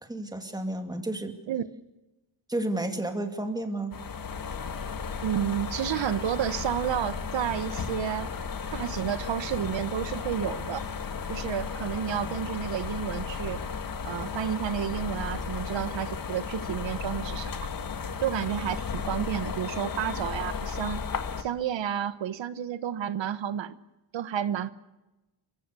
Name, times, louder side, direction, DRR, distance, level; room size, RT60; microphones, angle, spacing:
voice 1, 0.0-1.4 2.5-4.0, right 1 dB, 10° right, 2.4 m, -31 dB
sound 1, 3.9-21.4, left 5 dB, 45° left, 1.6 m, -34 dB
voice 2, 5.2-8.3 8.7-10.8 11.3-13.6 14.0-17.6 18.2-21.0 21.4-23.8 24.1-24.7, right 9 dB, 65° right, 1.1 m, -31 dB
28.0 x 16.0 x 8.3 m
wide cardioid pair, 150°, 49 cm